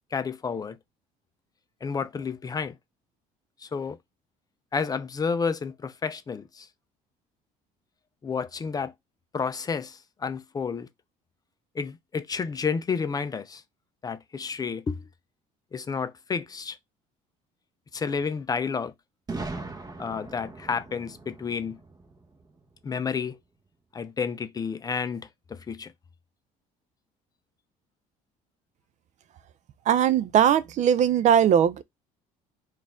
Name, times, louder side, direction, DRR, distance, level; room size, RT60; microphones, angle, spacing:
voice 1, 0.1-0.8 1.8-2.8 3.6-4.0 4.7-6.7 8.2-8.9 9.3-10.9 11.7-13.6 14.0-15.1 15.7-16.8 17.9-18.9 20.0-21.8 22.8-23.4 23.9-25.9, left 5 dB, 25° left, 0.5 m, -30 dB
Boom, 19.3-23.1, right 3 dB, 25° right, 1.0 m, -40 dB
voice 2, 29.9-31.8, right 9 dB, 50° right, 0.4 m, -20 dB
4.1 x 2.5 x 3.5 m
cardioid pair, 120°, 16 cm